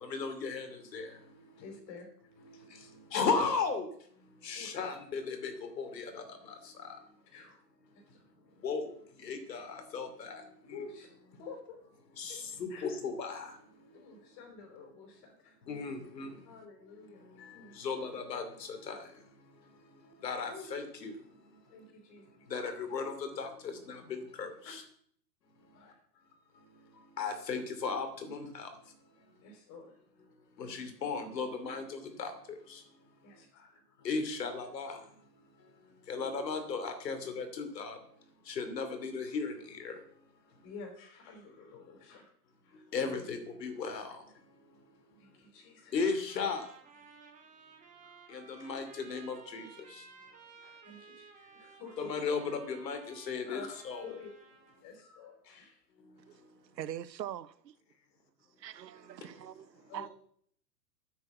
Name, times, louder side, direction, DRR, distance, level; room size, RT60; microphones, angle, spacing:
voice 1, 0.0-1.1 3.1-3.9 4.4-6.2 6.8-7.0 8.6-8.9 9.2-10.4 10.7-10.8 12.2-13.5 15.7-16.3 17.8-19.0 20.2-21.1 22.5-24.8 27.2-28.7 30.6-32.3 32.7-32.8 34.0-35.0 36.1-38.0 38.5-39.9 42.9-44.2 45.9-46.7 48.3-49.7 52.0-54.1, left 5 dB, 80° left, 2.9 m, -36 dB
voice 2, 1.6-2.1 4.5-4.8 7.3-7.6 8.1-8.2 10.7-11.1 11.4-12.0 12.3-12.9 13.9-15.6 16.4-17.2 17.5-17.8 20.5-20.7 21.7-22.3 24.6-24.7 25.7-26.0 29.4-30.0 33.2-33.8 40.6-42.2 42.6-42.8 45.2-46.2 48.0-48.7 50.6-52.1 53.5-53.7 54.0-54.3 54.8-55.8 59.9-60.1, left 5 dB, 40° left, 5.1 m, -50 dB
Trumpet, 46.3-54.8, right 5 dB, 15° right, 2.2 m, -56 dB
voice 3, 56.7-57.5 58.6-59.7 59.9-60.1, right 11 dB, 90° right, 0.9 m, -42 dB
9.3 x 6.8 x 8.1 m
hypercardioid pair, 135°, 49 cm